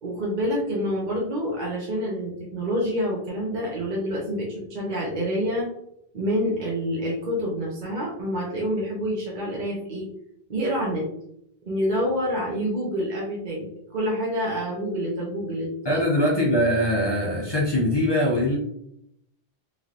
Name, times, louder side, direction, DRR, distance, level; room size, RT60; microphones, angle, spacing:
voice 1, 0.0-5.7 6.1-10.1 10.5-11.1 11.7-13.7 13.9-16.0, equal, 50° right, -4 dB, 0.8 m, -27 dB
voice 2, 15.8-18.6, equal, 30° left, -4 dB, 0.5 m, -22 dB
3.2 x 2.6 x 2.4 m, 0.75 s
omnidirectional pair, 1.0 m